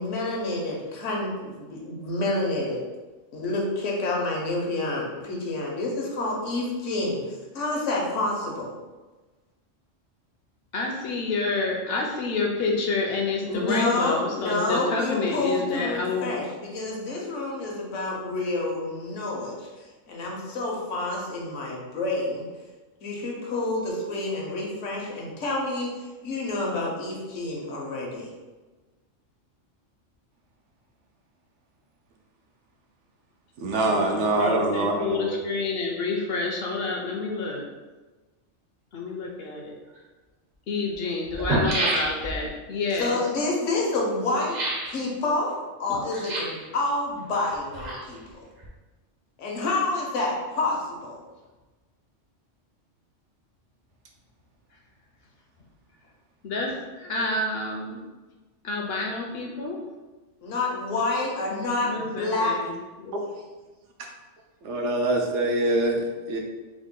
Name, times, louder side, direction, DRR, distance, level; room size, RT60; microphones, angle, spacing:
voice 1, 0.0-2.8 3.3-8.7 13.4-22.4 23.0-25.9 26.2-28.3 42.9-44.6 44.9-45.5 45.8-48.5 49.4-51.2 60.4-62.5, left 2 dB, 80° left, -2 dB, 1.1 m, -28 dB
voice 2, 10.7-16.3 33.8-37.6 38.9-39.7 40.7-43.2 45.9-46.0 56.4-58.0 58.6-59.8 61.8-62.7 63.0-63.1, left 3 dB, 60° left, 0 dB, 0.7 m, -29 dB
voice 3, 33.6-35.4 64.6-66.4, right 2 dB, 75° right, 1 dB, 0.9 m, -24 dB
sound 1, 40.0-40.1 40.9-41.0 41.3-42.5 44.5-45.0 46.1-46.7 47.5-48.3 48.6-48.7, right 1 dB, 45° right, 0.7 m, -28 dB
3.6 x 2.1 x 3.6 m, 1.2 s
omnidirectional pair, 1.3 m